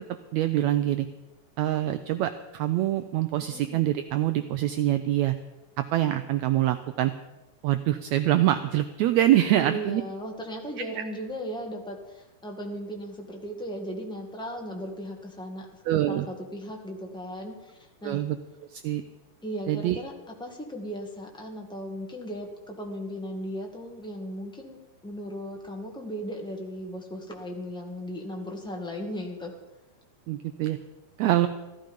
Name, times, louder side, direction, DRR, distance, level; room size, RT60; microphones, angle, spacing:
voice 1, 0.3-1.1 1.6-5.3 5.8-7.1 7.6-10.0 15.9-16.3 18.0-18.4 18.7-19.0 19.7-20.0 30.3-30.8 31.2-31.5, right 13 dB, 80° right, 10 dB, 1.6 m, -25 dB
voice 2, 3.5-3.9 9.6-18.2 19.4-29.5, equal, 5° left, 1 dB, 0.9 m, -37 dB
15.5 x 13.0 x 5.4 m, 1.0 s
omnidirectional pair, 3.7 m